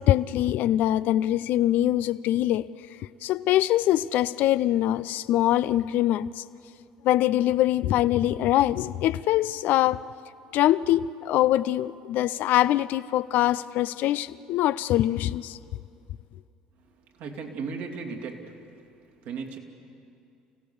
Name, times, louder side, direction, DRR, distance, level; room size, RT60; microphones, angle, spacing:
voice 1, 0.0-2.7 3.2-6.4 7.0-10.0 10.5-15.6, left 13 dB, 60° left, 0.5 m, -23 dB
voice 2, 16.9-18.8 19.2-19.6, right 5 dB, 65° right, 2.6 m, -36 dB
29.0 x 16.5 x 7.1 m
hypercardioid pair, 65°, 3 cm